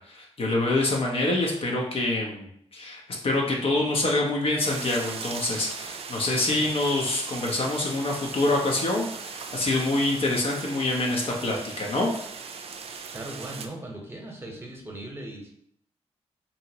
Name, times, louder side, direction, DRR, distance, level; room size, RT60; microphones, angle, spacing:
voice 1, 0.0-12.2, left 2 dB, 55° left, -1 dB, 0.7 m, -26 dB
sound 1, 4.6-13.7, right 5 dB, 55° right, 0.4 m, -39 dB
voice 2, 6.4-6.7 13.1-15.5, right 1 dB, 20° right, 0 dB, 0.9 m, -39 dB
2.8 x 2.7 x 2.8 m, 0.68 s
cardioid pair, 60°, 12 cm